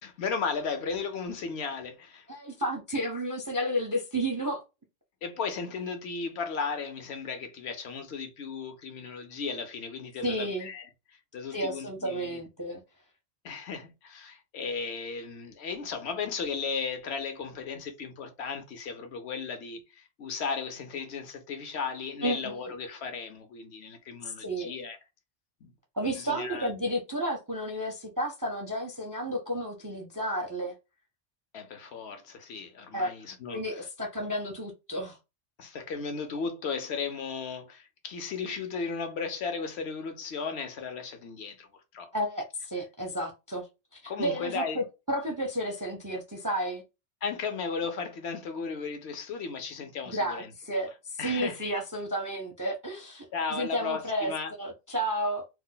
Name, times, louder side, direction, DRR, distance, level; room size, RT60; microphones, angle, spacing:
voice 1, 0.0-2.3 5.2-12.4 13.4-25.0 25.6-25.7 26.1-26.7 31.5-33.6 35.6-42.1 44.1-44.8 47.2-50.5 51.2-51.6 53.3-54.5, left 5 dB, 65° left, 0.9 m, -35 dB
voice 2, 2.3-4.6 10.2-10.7 11.5-12.8 22.2-22.5 24.3-24.7 25.9-30.7 32.9-33.1 33.5-35.2 42.1-43.7 43.9-46.8 50.1-53.3 53.5-54.3 54.6-55.4, equal, 25° right, 0.4 m, -32 dB
2.5 x 2.1 x 3.7 m
omnidirectional pair, 1.2 m